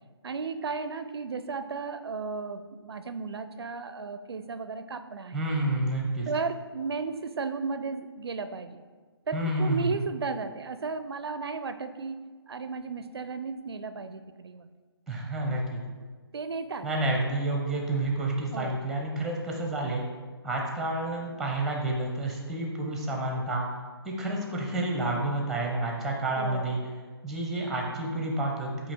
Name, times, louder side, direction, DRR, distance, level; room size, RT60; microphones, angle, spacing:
voice 1, 0.2-5.4 6.3-8.8 9.3-12.2 12.5-14.7 16.3-16.9 18.5-18.8 26.4-26.7, right 4 dB, 70° right, 11 dB, 0.4 m, -34 dB
voice 2, 5.3-6.3 9.3-9.9 15.1-15.8 16.8-20.0 20.4-23.7 24.0-26.8 27.2-28.9, right 2 dB, ahead, 0 dB, 0.7 m, -29 dB
8.4 x 2.8 x 4.3 m, 1.5 s
figure-of-eight pair, 140°, 14 cm